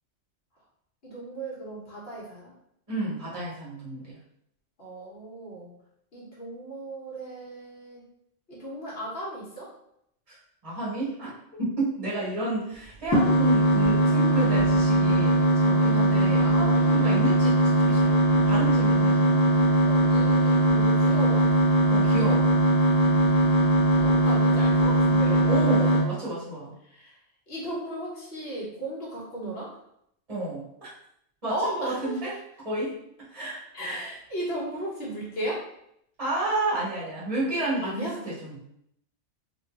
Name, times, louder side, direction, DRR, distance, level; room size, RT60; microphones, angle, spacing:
voice 1, 1.0-2.5 4.8-5.7 6.1-8.0 8.5-9.7 16.3-17.2 19.8-21.4 23.9-25.4 26.9-27.2 27.5-29.7 31.5-32.3 33.7-35.6 37.8-38.2, right 1 dB, 55° left, -5 dB, 1.5 m, -36 dB
voice 2, 2.9-4.1 10.3-10.4 10.6-11.3 11.6-17.5 17.9-19.6 21.9-22.5 25.4-26.7 30.3-30.9 31.4-32.3 32.6-32.9 33.3-34.0 36.2-37.9 38.2-38.6, right 2 dB, 30° right, -7 dB, 1.5 m, -31 dB
sound 1, 13.1-26.0, right 2 dB, 15° left, 0.9 m, -20 dB
3.7 x 3.0 x 2.9 m, 0.74 s
omnidirectional pair, 1.2 m